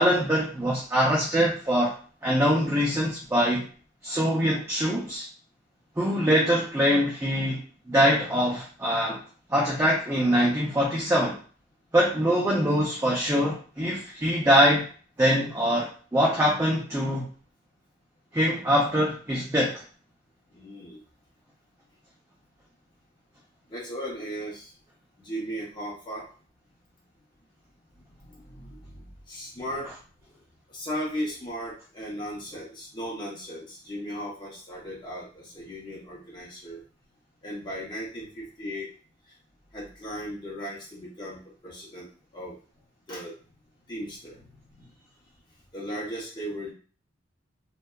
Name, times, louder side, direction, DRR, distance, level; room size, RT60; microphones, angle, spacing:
voice 1, 0.0-1.9 2.2-3.6 4.0-5.3 6.0-7.6 7.9-9.2 9.5-11.4 11.9-14.8 15.2-17.2 18.3-19.8, equal, 15° right, -4 dB, 0.4 m, -23 dB
voice 2, 20.5-21.0 23.7-24.7 25.2-26.2 27.9-29.9 30.7-36.8 37.4-38.9 39.7-42.1 42.3-42.5 43.1-43.3 43.9-44.9 45.7-46.7, equal, 25° left, -6 dB, 0.7 m, -37 dB
2.6 x 2.1 x 2.2 m, 0.40 s
head